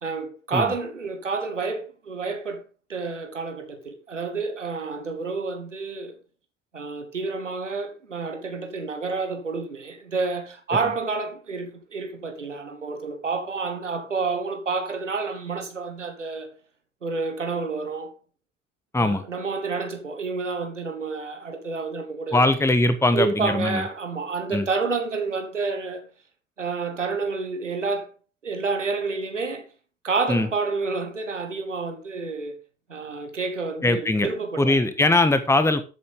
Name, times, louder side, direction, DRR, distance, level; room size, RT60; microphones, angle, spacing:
voice 1, 0.0-2.6 2.9-6.1 6.7-16.5 17.0-18.1 19.0-22.5 23.1-26.0 26.6-28.1 28.4-29.7 30.0-32.5 32.9-34.8, right 4 dB, 90° right, 1.4 m, -29 dB
voice 2, 22.3-23.9 24.5-24.7 30.3-30.5 33.8-34.3 34.6-35.8, left 2 dB, 10° left, 1.4 m, -21 dB
12.5 x 8.6 x 3.7 m
figure-of-eight pair, 50°, 36 cm